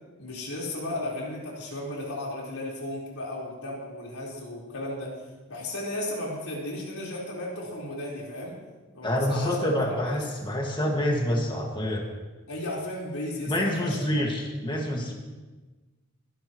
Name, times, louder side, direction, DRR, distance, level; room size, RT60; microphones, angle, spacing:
voice 1, 0.2-5.2 5.5-8.6 8.9-9.7 10.0-10.2 12.5-14.0, left 1 dB, 80° left, -4 dB, 4.5 m, -34 dB
voice 2, 9.0-12.1 13.5-15.1, left 1 dB, 25° left, 0 dB, 2.0 m, -27 dB
23.5 x 11.5 x 3.2 m, 1.2 s
head